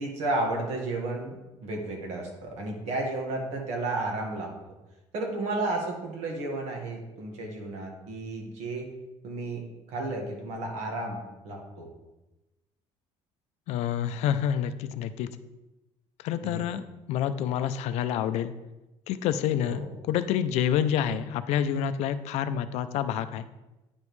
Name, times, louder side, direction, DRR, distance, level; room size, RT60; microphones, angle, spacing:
voice 1, 0.0-4.7 5.1-8.9 9.2-9.6 9.9-11.9 16.4-16.7 19.6-19.9, right 2 dB, 70° right, 1 dB, 1.6 m, -33 dB
voice 2, 13.7-15.3 16.2-16.8 17.1-18.5 19.1-23.5, left 9 dB, 70° left, 11 dB, 0.4 m, -28 dB
9.6 x 5.2 x 3.2 m, 1.0 s
cardioid pair, 175°, 12 cm